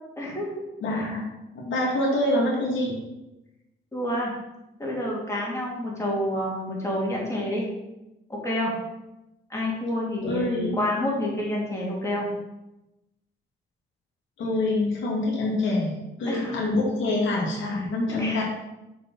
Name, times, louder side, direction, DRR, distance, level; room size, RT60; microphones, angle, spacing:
voice 1, 0.2-0.6 3.9-4.3 4.8-7.7 8.3-8.7 9.5-12.3 16.2-16.6 18.1-18.4, left 1 dB, 15° left, -4 dB, 3.0 m, -28 dB
voice 2, 0.8-1.2 1.5-2.9 10.2-10.8 14.4-18.4, left 2 dB, 75° left, -3 dB, 2.4 m, -26 dB
6.8 x 5.1 x 5.6 m, 0.96 s
cardioid pair, 90°, 20 cm